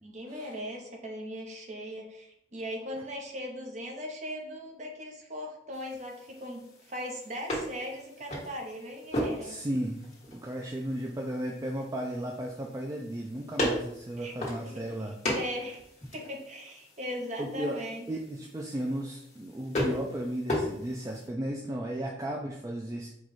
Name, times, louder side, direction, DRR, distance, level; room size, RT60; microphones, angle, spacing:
voice 1, 0.0-9.6 14.2-14.3 14.6-14.8 15.3-15.8 16.1-18.1, equal, 40° right, 1 dB, 0.8 m, -39 dB
sound 1, 5.7-21.3, left 1 dB, 35° left, 1.5 m, -37 dB
voice 2, 9.4-15.2 17.4-17.8 18.1-23.1, right 1 dB, 20° right, 0 dB, 0.3 m, -35 dB
4.6 x 2.3 x 4.0 m, 0.76 s
head